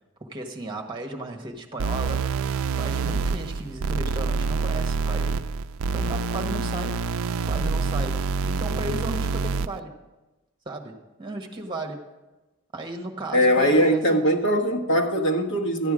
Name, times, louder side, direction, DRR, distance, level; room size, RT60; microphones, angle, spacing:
voice 1, 0.2-5.5 5.9-7.0 7.4-9.9 10.6-12.0 12.7-14.3, right 2 dB, 25° right, 2 dB, 1.3 m, -35 dB
sound 1, 1.8-9.8, right 4 dB, 80° right, 0.4 m, -26 dB
voice 2, 13.3-15.9, equal, 60° left, 2 dB, 1.3 m, -21 dB
13.0 x 9.2 x 5.0 m, 1.1 s
head